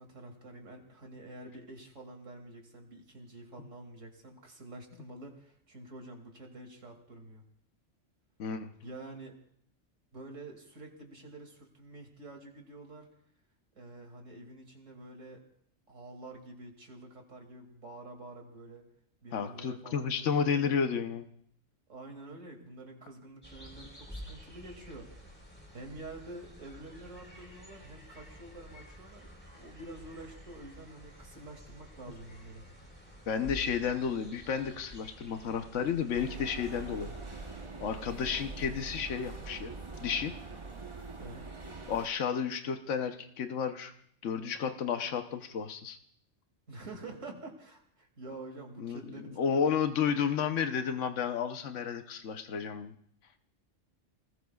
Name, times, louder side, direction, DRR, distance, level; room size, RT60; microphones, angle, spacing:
voice 1, 0.0-7.4 8.8-9.3 10.1-13.1 13.8-15.4 15.9-18.8 19.2-20.6 21.9-25.3 25.7-32.6 41.2-41.6 46.7-49.6, right 2 dB, 80° right, 2 dB, 2.9 m, -48 dB
voice 2, 8.4-8.7 19.3-21.3 33.3-37.1 37.8-39.7 40.0-40.3 41.9-43.9 44.2-46.0 48.8-52.9, left 7 dB, 75° left, 7 dB, 1.2 m, -32 dB
sound 1, 23.4-37.7, equal, 10° left, 3.9 m, -50 dB
sound 2, 36.1-42.1, right 3 dB, 25° right, 1.0 m, -43 dB
29.0 x 20.0 x 2.4 m, 0.66 s
omnidirectional pair, 1.3 m